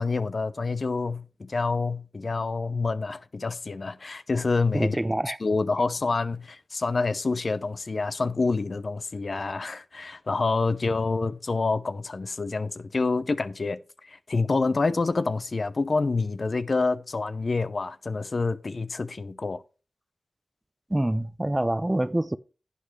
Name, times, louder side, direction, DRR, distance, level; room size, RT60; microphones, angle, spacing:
voice 1, 0.0-5.0 5.4-19.6, left 3 dB, 60° left, 0.6 m, -27 dB
voice 2, 4.7-5.4 20.9-22.4, right 1 dB, 20° right, 0.6 m, -26 dB
11.0 x 8.3 x 3.2 m
cardioid pair, 45°, 0 cm